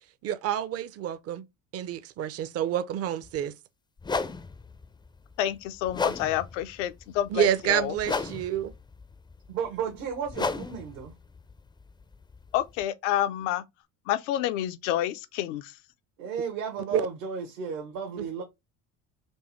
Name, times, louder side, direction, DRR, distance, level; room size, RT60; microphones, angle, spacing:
voice 1, 0.2-1.4 1.7-3.5 7.3-8.7 16.9-17.0, right 10 dB, 40° right, 0.6 m, -28 dB
sound 1, 3.2-3.4 4.0-12.8, left 4 dB, 10° left, 0.4 m, -35 dB
voice 2, 5.4-8.0 12.5-13.6 14.1-15.8, left 12 dB, 75° left, 0.6 m, -29 dB
voice 3, 9.5-11.1 16.2-18.4, right 6 dB, 75° right, 1.2 m, -33 dB
4.5 x 2.7 x 3.1 m
hypercardioid pair, 80°, 38 cm